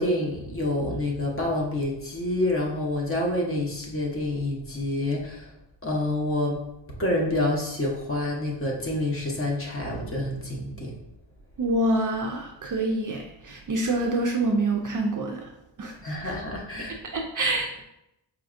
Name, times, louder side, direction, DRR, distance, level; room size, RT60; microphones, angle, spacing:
voice 1, 0.0-5.5 5.8-6.6 7.0-10.9 16.0-17.0, left 1 dB, 30° left, -1 dB, 0.7 m, -27 dB
voice 2, 11.6-15.5 15.8-16.3 17.1-17.8, right 2 dB, 45° right, 1 dB, 0.4 m, -26 dB
4.9 x 2.6 x 2.4 m, 0.84 s
wide cardioid pair, 140°, 48 cm